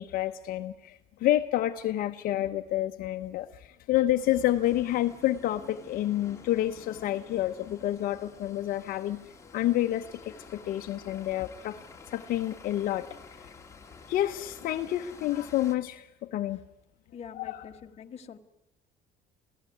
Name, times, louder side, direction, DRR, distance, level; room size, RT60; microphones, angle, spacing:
voice 1, 0.0-11.8 12.1-13.5 14.1-16.6 17.4-17.6, left 13 dB, 65° left, 7 dB, 0.9 m, -29 dB
sound 1, 4.2-15.8, left 4 dB, 20° left, 2.5 m, -50 dB
voice 2, 17.1-18.4, left 7 dB, 40° left, 5 dB, 1.6 m, -45 dB
27.0 x 16.0 x 9.3 m, 0.94 s
cardioid pair, 120°, 16 cm